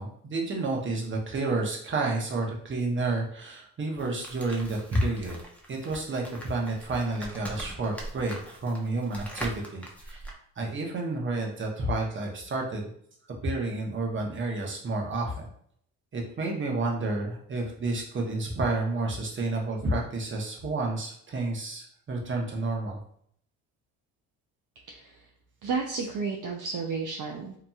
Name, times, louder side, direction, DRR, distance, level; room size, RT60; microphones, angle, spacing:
voice 1, 0.0-5.4 5.7-10.2 10.6-12.9 13.4-15.5 16.1-23.0, right 2 dB, 30° right, 0 dB, 0.9 m, -30 dB
sound 1, 4.0-10.3, right 1 dB, 5° left, 0.6 m, -41 dB
voice 2, 24.9-25.3 25.6-27.5, right 4 dB, 50° right, 0 dB, 0.5 m, -32 dB
2.9 x 2.6 x 2.3 m, 0.64 s
supercardioid pair, 75°, 40 cm